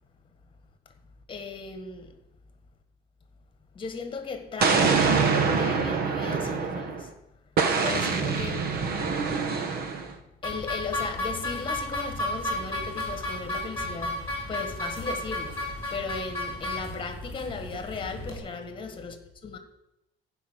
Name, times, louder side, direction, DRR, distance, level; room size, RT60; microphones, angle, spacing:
voice 1, 1.3-2.1 3.7-5.1 5.5-7.1 7.8-8.7 10.4-19.2 19.4-19.6, left 4 dB, 30° left, 1.6 m, -36 dB
Explosion, 4.6-7.1 7.6-10.1, right 5 dB, 60° right, 1.4 m, -25 dB
sound 1, 10.4-18.4, left 1 dB, 15° left, 3.8 m, -33 dB
14.5 x 5.5 x 8.1 m
cardioid pair, 140°, 18 cm